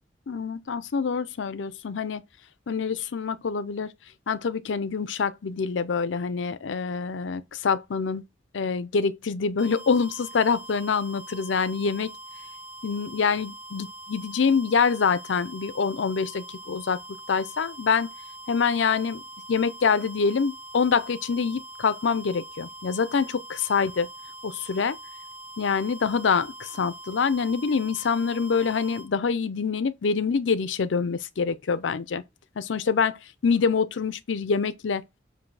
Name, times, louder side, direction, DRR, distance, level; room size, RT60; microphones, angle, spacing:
voice 1, 0.3-2.2 2.7-3.9 4.3-8.2 8.5-12.2 12.8-17.0 17.3-18.1 18.5-19.2 19.5-24.1 24.4-25.0 25.6-32.2 32.6-35.0, left 5 dB, 85° left, 0.5 m, -25 dB
sound 1, 9.6-29.1, right 1 dB, 5° right, 2.7 m, -43 dB
7.3 x 2.7 x 4.7 m
head